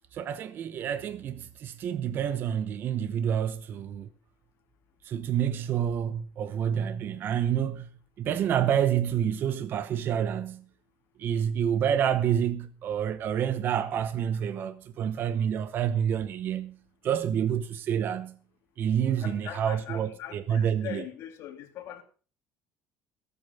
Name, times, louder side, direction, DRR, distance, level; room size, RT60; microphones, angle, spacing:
voice 1, 0.1-4.1 5.0-7.9 8.2-10.6 11.2-16.8 17.0-18.3 18.8-21.0, right 9 dB, 40° right, 0.9 m, -28 dB
voice 2, 19.2-22.0, left 11 dB, 55° left, 2.9 m, -41 dB
20.0 x 8.6 x 5.4 m
cardioid pair, 170°, 5 cm